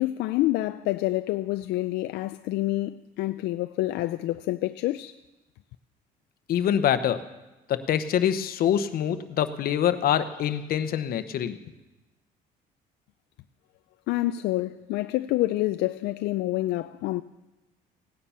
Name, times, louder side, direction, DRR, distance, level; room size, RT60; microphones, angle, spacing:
voice 1, 0.0-5.1 14.1-17.2, left 17 dB, 85° left, 0.4 m, -27 dB
voice 2, 6.5-7.2 7.7-11.6, left 10 dB, 60° left, 1.0 m, -25 dB
17.5 x 9.7 x 5.7 m
cardioid pair, 110°, 17 cm